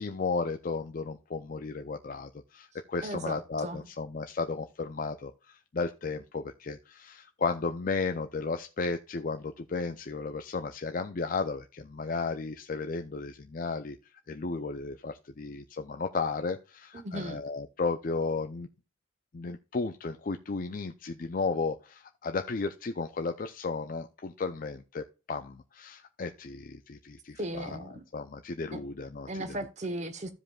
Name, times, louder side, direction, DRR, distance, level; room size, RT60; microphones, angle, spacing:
voice 1, 0.0-14.0 14.3-18.7 19.3-27.8 28.1-29.4, left 4 dB, 45° left, 0.5 m, -34 dB
voice 2, 3.0-3.8 16.9-17.4 27.4-28.0 28.7-28.8 29.3-30.3, right 1 dB, 35° right, 0.9 m, -36 dB
15.0 x 5.1 x 2.3 m
head